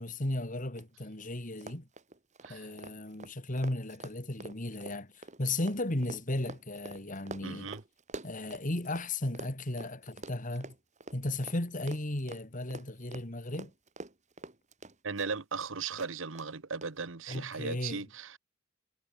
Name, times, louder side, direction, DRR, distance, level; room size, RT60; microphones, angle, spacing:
voice 1, 0.0-1.9 2.5-7.7 8.2-10.7 11.1-13.7 17.3-18.1, left 1 dB, 45° left, 2.8 m, -35 dB
Run, 0.8-0.9 1.1-1.3 1.5-9.1 9.3-15.7 16.0-16.5 16.8-16.9 17.3-17.4, right 2 dB, 40° right, 4.3 m, -46 dB
voice 2, 7.4-7.8 15.0-18.4, right 5 dB, 85° right, 1.3 m, -37 dB
head